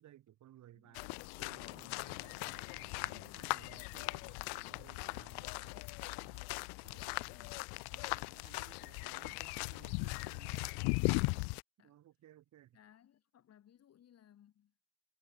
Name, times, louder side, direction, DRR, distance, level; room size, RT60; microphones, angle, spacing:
voice 1, 0.0-5.9 6.2-6.5 6.8-7.5 7.9-10.7 11.3-12.8, right 13 dB, 35° right, 2.5 m, -60 dB
voice 2, 0.7-1.2 3.1-4.0 6.6-7.6 11.8-12.0 12.7-14.7, left 10 dB, 30° left, 3.1 m, -65 dB
sound 1, 0.9-11.6, left 33 dB, 55° left, 0.5 m, -39 dB
cardioid pair, 160°, 49 cm